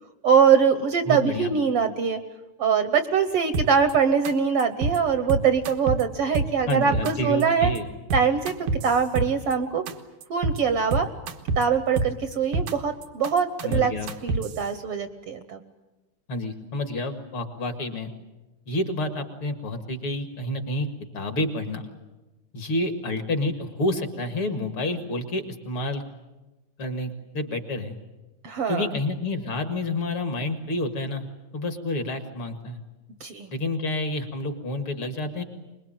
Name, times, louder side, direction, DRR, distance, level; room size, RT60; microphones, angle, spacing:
voice 1, 0.2-2.2 2.6-7.7 8.1-8.5 8.8-9.8 10.3-11.1 11.6-13.9 14.2-15.6 28.4-28.9 33.2-33.5, right 6 dB, 60° right, 10 dB, 1.7 m, -23 dB
voice 2, 1.1-1.5 6.7-7.9 13.6-14.1 16.3-18.1 18.7-20.9 21.1-21.9 22.5-26.0 26.8-28.0 28.7-31.3 31.5-32.8 33.5-35.4, left 2 dB, 45° left, 7 dB, 2.6 m, -29 dB
sound 1, 3.5-3.9 4.2-4.3 4.6-5.0 5.3-6.0 6.3-7.1 7.4-7.8 8.1-9.5 9.9-10.0 10.2-10.6 10.9-11.6 12.0-12.7 13.0-14.6, right 3 dB, 90° right, 2.9 m, -26 dB
24.5 x 22.0 x 8.9 m, 1.1 s
omnidirectional pair, 3.5 m